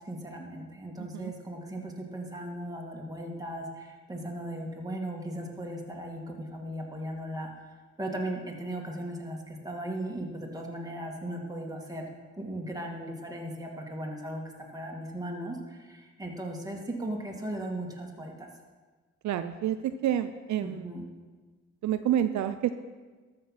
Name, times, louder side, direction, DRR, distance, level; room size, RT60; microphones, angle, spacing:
voice 1, 0.1-7.5 8.0-12.1 12.4-14.4 14.7-18.5 20.6-21.0, right 1 dB, 10° right, 0 dB, 2.2 m, -37 dB
voice 2, 1.0-1.3 19.2-20.9 21.8-22.7, right 11 dB, 70° right, 10 dB, 0.5 m, -29 dB
13.0 x 6.8 x 5.8 m, 1.4 s
cardioid pair, 90°, 30 cm